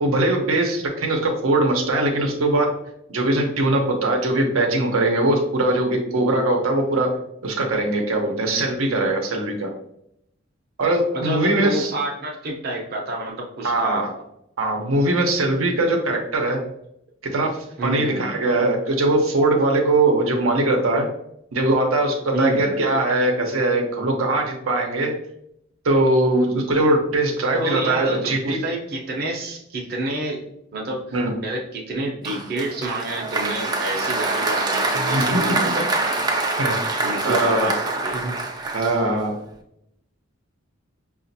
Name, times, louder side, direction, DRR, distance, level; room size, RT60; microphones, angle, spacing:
voice 1, 0.0-2.7 3.1-7.1 7.4-9.7 10.8-11.9 13.6-14.1 14.6-16.6 17.3-17.5 17.8-21.0 21.5-25.1 25.8-28.6 31.1-31.3 34.9-35.4 36.6-36.7 37.2-37.7 38.7-39.3, right 2 dB, 85° right, 1 dB, 0.7 m, -21 dB
voice 2, 11.1-14.0 17.8-18.3 22.3-22.6 27.5-30.4 30.7-31.0 31.4-35.9 37.0-37.7 38.0-38.4, right 1 dB, 50° right, -1 dB, 0.7 m, -28 dB
Applause, 32.2-39.4, right 2 dB, 20° right, 0.4 m, -25 dB
5.0 x 2.4 x 2.6 m, 0.76 s
head